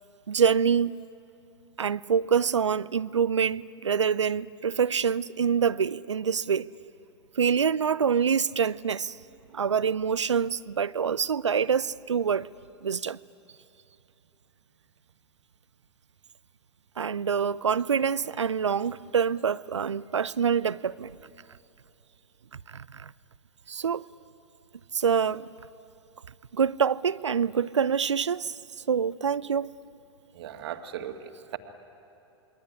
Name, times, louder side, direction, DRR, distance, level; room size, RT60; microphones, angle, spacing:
voice 1, 0.3-1.1 1.8-6.7 7.4-9.2 9.5-12.5 12.8-13.2 17.0-21.1 22.7-23.1 23.7-24.1 24.9-25.5 26.5-28.6 28.9-29.7, right 7 dB, 80° right, 0.6 m, -26 dB
voice 2, 30.4-31.6, right 10 dB, 60° right, 1.9 m, -37 dB
27.5 x 22.0 x 9.9 m
figure-of-eight pair, 100°, 15 cm